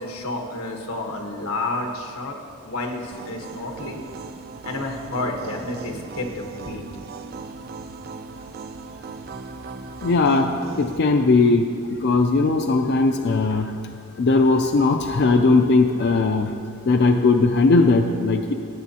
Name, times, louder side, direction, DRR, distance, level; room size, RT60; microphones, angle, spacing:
voice 1, 0.0-2.4 2.6-4.1 4.6-6.8, left 2 dB, 90° left, 1 dB, 1.2 m, -30 dB
sound 1, 3.1-11.0, right 4 dB, 45° right, 0.3 m, -38 dB
voice 2, 10.0-10.5 10.8-11.7 12.0-13.7 14.2-16.5 16.9-18.5, left 3 dB, 50° left, 5 dB, 0.4 m, -18 dB
16.5 x 8.1 x 2.8 m, 2.4 s
head